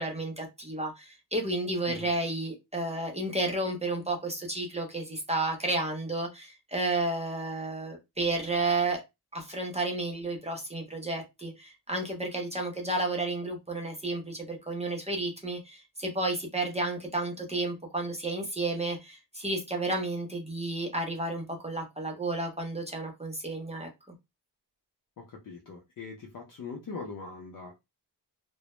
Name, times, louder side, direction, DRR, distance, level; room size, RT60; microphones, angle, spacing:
voice 1, 0.0-9.0 9.3-23.9, right 2 dB, 15° right, 0.5 m, -32 dB
voice 2, 25.2-27.8, left 4 dB, 50° left, 0.6 m, -41 dB
2.1 x 2.0 x 2.9 m
wide cardioid pair, 115°, 41 cm